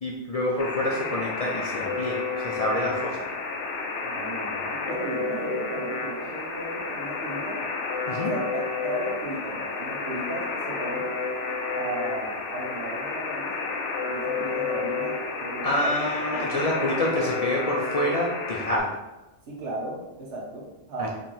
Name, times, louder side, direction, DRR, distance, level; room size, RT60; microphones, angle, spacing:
voice 1, 0.0-3.2 8.1-8.3 15.6-18.9 21.0-21.1, left 1 dB, 50° left, -2 dB, 0.4 m, -27 dB
Alarm, 0.6-18.8, left 4 dB, 90° left, 1.0 m, -31 dB
voice 2, 4.0-7.6 8.3-11.1 11.7-13.5 14.0-16.0 16.3-17.4 19.4-21.1, right 1 dB, 75° right, -2 dB, 1.3 m, -35 dB
3.7 x 3.0 x 4.3 m, 1.0 s
omnidirectional pair, 1.2 m